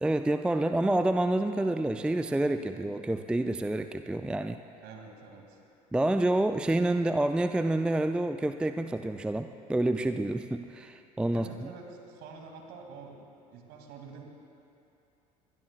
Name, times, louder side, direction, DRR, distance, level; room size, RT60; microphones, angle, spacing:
voice 1, 0.0-4.6 5.9-11.7, right 1 dB, 5° right, 9 dB, 0.4 m, -28 dB
voice 2, 4.8-5.6 11.3-14.2, right 4 dB, 50° right, 2 dB, 2.5 m, -47 dB
24.5 x 20.5 x 2.4 m, 2.7 s
figure-of-eight pair, 65°, 20 cm